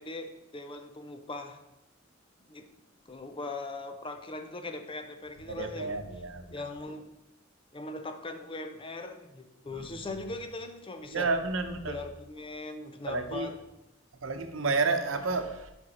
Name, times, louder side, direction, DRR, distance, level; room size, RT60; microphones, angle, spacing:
voice 1, 0.0-1.6 2.5-2.7 3.1-6.0 6.5-7.1 7.7-11.3 11.8-13.5, left 2 dB, 25° left, 7 dB, 0.6 m, -40 dB
voice 2, 5.5-6.5 9.7-10.1 11.1-12.0 13.1-13.5 14.2-15.7, right 3 dB, 85° right, 7 dB, 0.8 m, -31 dB
7.8 x 5.3 x 4.2 m, 0.90 s
head